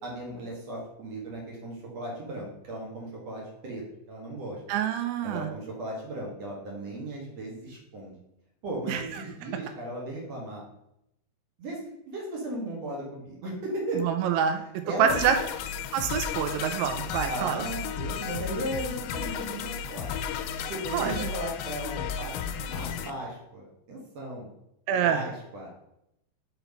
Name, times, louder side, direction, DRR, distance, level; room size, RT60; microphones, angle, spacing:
voice 1, 0.0-4.6 5.2-8.2 8.6-10.6 11.6-14.0 14.5-15.1 17.3-20.2 20.7-24.5 25.0-25.7, right 1 dB, 60° right, -2 dB, 1.8 m, -36 dB
voice 2, 4.7-5.5 8.9-9.0 14.0-14.6 15.0-15.4 15.9-17.7 20.9-21.3 24.9-25.2, right 8 dB, 85° right, 7 dB, 2.9 m, -26 dB
sound 1, 15.1-23.1, left 8 dB, 90° left, 3.0 m, -34 dB
6.9 x 4.4 x 5.4 m, 0.81 s
omnidirectional pair, 5.4 m